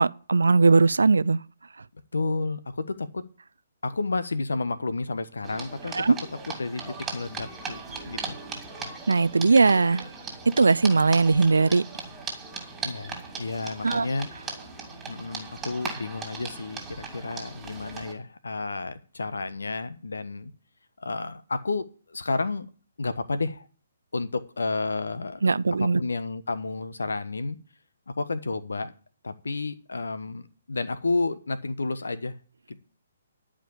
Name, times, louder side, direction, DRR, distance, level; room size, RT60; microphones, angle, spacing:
voice 1, 0.0-1.4 6.0-6.2 9.1-10.0 10.6-11.8 13.8-14.1 25.4-26.0, right 4 dB, 70° right, 0.4 m, -19 dB
voice 2, 2.1-3.2 3.8-5.9 6.6-8.3 12.8-14.3 15.1-20.5 21.0-22.7 23.0-23.7 24.1-25.4 25.8-27.6 28.1-28.9 29.2-30.4 30.7-32.4 32.7-32.8, left 3 dB, 70° left, 1.1 m, -31 dB
sound 1, 5.4-18.1, right 4 dB, 10° right, 2.9 m, -38 dB
11.5 x 5.1 x 8.4 m
figure-of-eight pair, 130°, 0 cm